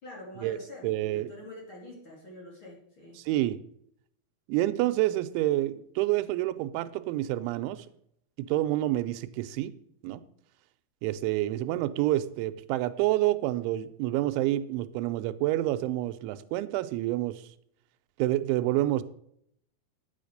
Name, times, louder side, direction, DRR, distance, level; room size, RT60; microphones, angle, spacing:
voice 1, 0.0-3.2, left 1 dB, 35° left, -2 dB, 2.7 m, -46 dB
voice 2, 0.8-1.3 3.2-3.6 4.5-7.9 8.4-9.7 10.0-10.2 11.0-17.5 18.2-19.0, right 15 dB, 90° right, 12 dB, 3.1 m, -28 dB
10.0 x 7.8 x 6.6 m, 0.70 s
omnidirectional pair, 5.3 m